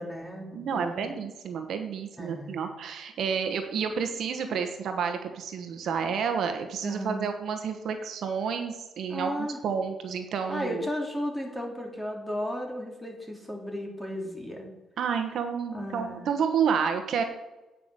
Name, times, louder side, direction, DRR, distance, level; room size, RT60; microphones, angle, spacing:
voice 1, 0.0-1.1 2.2-2.7 6.8-7.2 9.1-9.6 10.5-14.7 15.7-16.3, equal, ahead, 0 dB, 3.1 m, -35 dB
voice 2, 0.5-10.9 15.0-17.2, right 6 dB, 65° right, 6 dB, 1.2 m, -30 dB
9.3 x 5.8 x 8.1 m, 1.1 s
cardioid pair, 90°, 0 cm